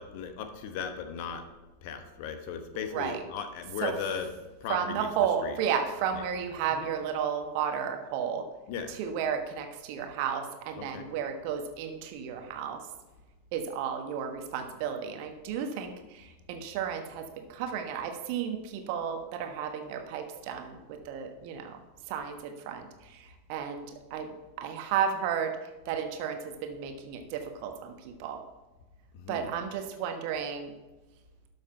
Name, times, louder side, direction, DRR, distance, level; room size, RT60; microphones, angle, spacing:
voice 1, 0.0-1.4 1.8-4.3 4.6-5.6 6.1-6.3 6.7-6.9 8.7-8.9 10.8-11.1 29.1-29.5, left 7 dB, 45° left, 8 dB, 1.1 m, -37 dB
voice 2, 4.7-8.5 9.0-12.8 13.5-21.8 22.1-24.3 24.6-25.5 25.9-28.4 29.3-30.7, right 8 dB, 45° right, 5 dB, 1.3 m, -33 dB
12.5 x 6.4 x 4.4 m, 1.1 s
figure-of-eight pair, 90°, 0 cm